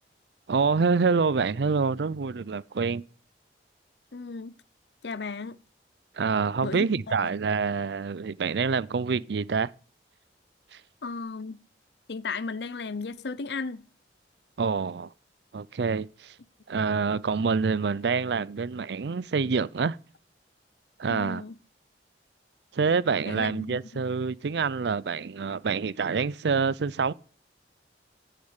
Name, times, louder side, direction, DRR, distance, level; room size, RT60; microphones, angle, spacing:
voice 1, 0.5-3.0 6.2-9.7 10.7-10.8 14.6-15.1 15.5-16.3 16.7-20.0 21.0-21.4 22.7-27.1, right 5 dB, 70° right, 0.5 m, -26 dB
voice 2, 4.1-4.6 5.0-5.6 6.6-7.4 11.0-11.6 12.1-13.9 21.1-21.6 23.2-24.0, left 4 dB, 70° left, 0.7 m, -35 dB
10.0 x 8.8 x 8.1 m
head